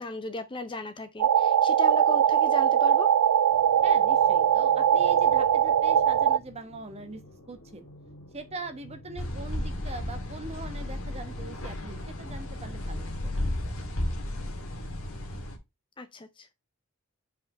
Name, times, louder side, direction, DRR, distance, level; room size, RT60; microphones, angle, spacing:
voice 1, 0.0-3.1 16.0-16.5, left 2 dB, 20° left, 0.5 m, -37 dB
sound 1, 1.2-6.4, right 9 dB, 90° right, 0.3 m, -21 dB
sound 2, 3.5-11.5, left 1 dB, 85° left, 2.7 m, -51 dB
voice 2, 3.8-7.2 7.5-7.9 8.3-13.3, right 2 dB, 30° right, 1.1 m, -42 dB
sound 3, 9.2-15.6, left 1 dB, 70° left, 1.9 m, -34 dB
5.2 x 4.9 x 5.1 m
head